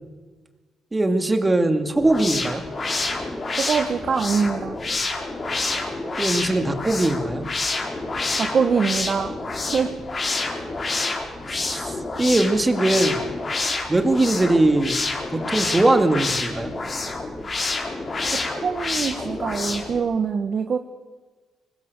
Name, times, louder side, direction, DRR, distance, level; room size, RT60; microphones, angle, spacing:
voice 1, 0.9-2.6 6.2-7.4 11.5-13.2 13.9-15.0 15.3-16.7, right 2 dB, 20° right, 6 dB, 2.6 m, -21 dB
sound 1, 1.9-20.0, left 3 dB, 35° left, 4.8 m, -28 dB
voice 2, 3.7-4.8 8.4-9.4 9.7-9.9 18.6-20.8, right 6 dB, 50° right, 7 dB, 1.4 m, -23 dB
24.5 x 21.0 x 6.9 m, 1.4 s
cardioid pair, 90°, 0 cm